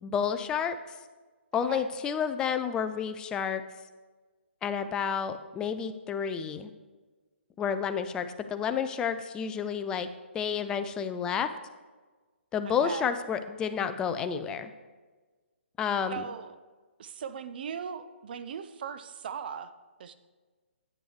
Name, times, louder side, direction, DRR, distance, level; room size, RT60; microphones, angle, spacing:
voice 1, 0.0-0.8 1.5-3.6 4.6-6.7 7.6-11.5 12.5-14.7 15.8-16.2, left 7 dB, 10° left, 9 dB, 0.3 m, -30 dB
voice 2, 12.6-13.1 16.1-16.6 17.0-19.7 20.0-20.1, right 7 dB, 50° right, 11 dB, 0.5 m, -38 dB
9.9 x 8.0 x 3.2 m, 1.3 s
hypercardioid pair, 145°, 7 cm